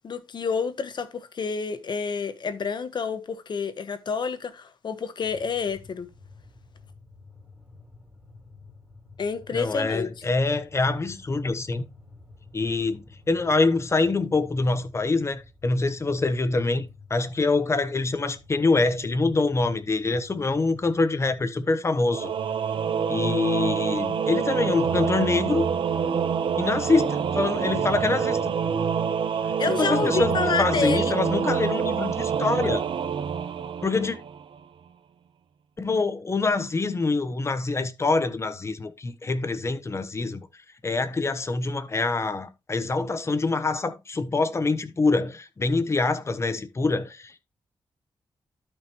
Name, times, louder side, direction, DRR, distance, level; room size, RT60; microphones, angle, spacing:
voice 1, 0.0-6.1 9.2-10.1 29.6-31.1, left 5 dB, 60° left, 1.1 m, -29 dB
sound 1, 5.2-21.5, left 3 dB, ahead, 3.8 m, -50 dB
voice 2, 9.5-11.8 12.5-22.3 23.1-25.6 26.6-28.6 29.6-32.8 33.8-34.2 35.8-40.5 40.8-47.4, left 3 dB, 30° left, 1.0 m, -25 dB
Singing / Musical instrument, 22.1-34.6, right 7 dB, 70° right, 1.0 m, -26 dB
12.0 x 5.5 x 3.1 m
cardioid pair, 100°, 9 cm